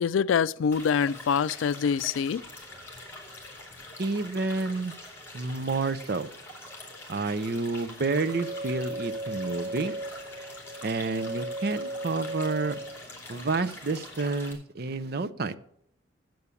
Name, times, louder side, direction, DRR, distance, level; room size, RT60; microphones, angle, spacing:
voice 1, 0.0-2.4, left 6 dB, 90° left, 0.3 m, -25 dB
sound 1, 0.7-14.5, left 2 dB, 15° left, 2.7 m, -45 dB
voice 2, 4.0-4.9 5.3-6.3 7.1-10.0 10.8-12.8 13.3-15.6, right 3 dB, 55° right, 0.6 m, -29 dB
sound 2, 8.1-13.0, right 1 dB, 15° right, 1.9 m, -36 dB
8.4 x 7.7 x 6.9 m
head